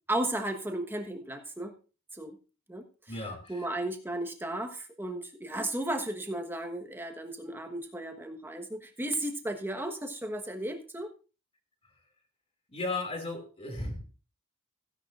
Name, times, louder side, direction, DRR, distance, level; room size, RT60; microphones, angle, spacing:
voice 1, 0.1-1.8 2.1-2.4 2.7-2.9 3.5-11.1, right 1 dB, 10° right, 5 dB, 1.2 m, -34 dB
voice 2, 3.1-3.7 12.7-14.0, left 2 dB, 25° left, 4 dB, 2.5 m, -35 dB
15.5 x 10.0 x 2.5 m, 0.33 s
head